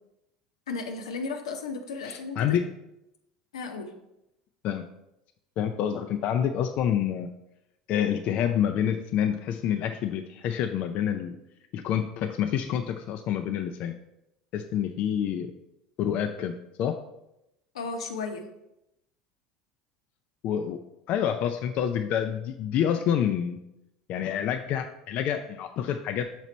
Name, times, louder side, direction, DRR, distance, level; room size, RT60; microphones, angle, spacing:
voice 1, 0.7-2.6 3.5-3.9 17.7-18.5, left 4 dB, 80° left, 4 dB, 0.7 m, -34 dB
voice 2, 2.0-2.6 4.6-4.8 5.6-7.3 7.9-11.4 11.7-13.9 14.5-15.5 16.0-16.5 16.8-17.0 20.4-20.8 21.1-23.6 24.1-26.3, left 9 dB, 50° left, 6 dB, 0.4 m, -27 dB
6.1 x 4.0 x 4.1 m, 0.87 s
hypercardioid pair, 75°, 3 cm